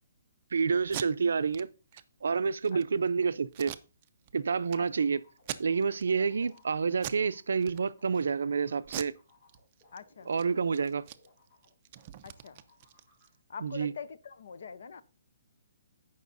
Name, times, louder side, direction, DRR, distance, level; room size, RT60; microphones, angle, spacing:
voice 1, 0.5-1.7 2.2-3.7 4.3-5.2 5.6-9.1 10.3-11.1 13.6-13.9, right 5 dB, 90° right, 0.5 m, -28 dB
Packing tape duct tape, 0.8-1.1 1.5-1.6 1.9-2.0 2.5-2.8 3.5-4.3 4.7-4.8 5.4-6.1 6.4-6.6 7.0-7.3 7.6-8.2 8.8-10.0 10.3-10.4 10.7-13.4, right 12 dB, 25° right, 0.4 m, -42 dB
sound 1, 5.0-12.0 12.3-13.3, left 2 dB, 30° left, 3.8 m, -63 dB
voice 2, 9.9-10.3 12.2-12.6 13.5-15.0, left 6 dB, 60° left, 0.6 m, -44 dB
16.0 x 5.4 x 2.6 m
hypercardioid pair, 175°, 0 cm